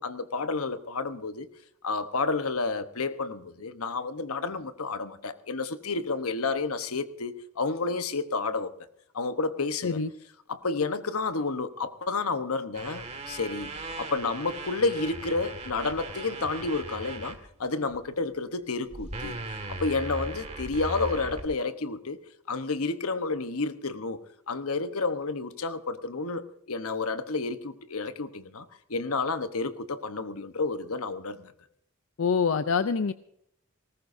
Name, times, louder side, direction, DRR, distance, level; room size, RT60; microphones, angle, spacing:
voice 1, 0.0-1.5 1.8-8.7 9.1-10.0 10.5-13.7 14.0-19.4 19.7-22.2 22.5-24.2 24.5-31.5, left 3 dB, 80° left, 1.1 m, -30 dB
sound 1, 12.7-17.4 17.9-18.1 18.9-21.5, right 2 dB, 30° right, 1.9 m, -38 dB
voice 2, 32.2-33.1, left 5 dB, 65° left, 0.5 m, -25 dB
19.5 x 18.5 x 2.7 m
head